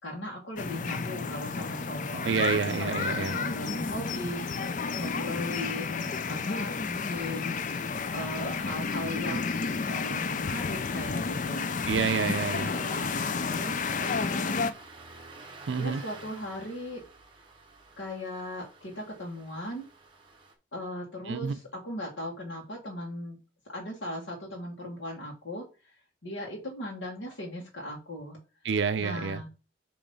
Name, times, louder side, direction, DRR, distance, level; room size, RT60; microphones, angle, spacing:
voice 1, 0.0-4.4 5.0-11.8 12.6-14.8 15.8-17.0 18.0-19.9 20.7-23.4 23.7-25.7 26.2-28.4 29.0-29.5, left 1 dB, 80° left, 1.6 m, -38 dB
sound 1, 0.6-14.7, left 5 dB, 40° left, 0.4 m, -31 dB
voice 2, 2.2-3.4 11.9-12.7 15.7-16.0 21.3-21.6 28.6-29.4, right 6 dB, 70° right, 0.5 m, -28 dB
Engine starting, 7.1-20.5, right 3 dB, 25° right, 1.2 m, -52 dB
6.9 x 3.1 x 5.4 m
head